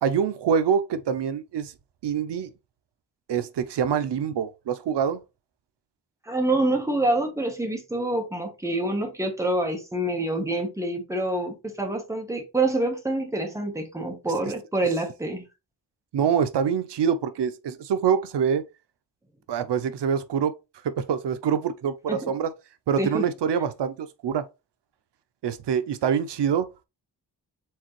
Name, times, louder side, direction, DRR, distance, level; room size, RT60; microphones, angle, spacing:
voice 1, 0.0-1.7 2.0-2.5 3.3-5.2 16.1-18.6 19.5-20.6 20.8-22.5 22.9-24.5 25.4-26.7, right 7 dB, 85° right, 0.6 m, -25 dB
voice 2, 6.2-15.4 22.1-22.3 23.0-23.2, right 2 dB, 5° right, 1.1 m, -26 dB
4.7 x 3.7 x 3.0 m
wide cardioid pair, 160°, 41 cm